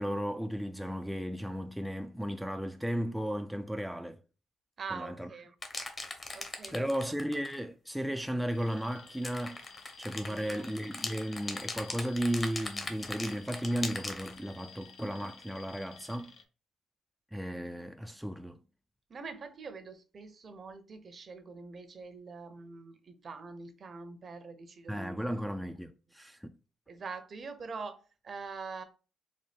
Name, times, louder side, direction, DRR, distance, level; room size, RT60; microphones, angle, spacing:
voice 1, 0.0-4.2 4.9-5.3 6.7-9.6 10.0-16.3 17.3-18.6 24.9-26.5, equal, ahead, 0.3 m, -35 dB
voice 2, 4.8-5.5 6.3-6.8 10.2-10.7 19.1-25.4 26.9-28.8, right 4 dB, 45° right, 0.7 m, -44 dB
sound 1, 5.6-7.6 9.1-14.4, left 2 dB, 30° left, 0.8 m, -39 dB
Alarm, 8.4-16.4, left 5 dB, 70° left, 0.7 m, -53 dB
4.1 x 2.2 x 3.4 m
cardioid pair, 90°, 0 cm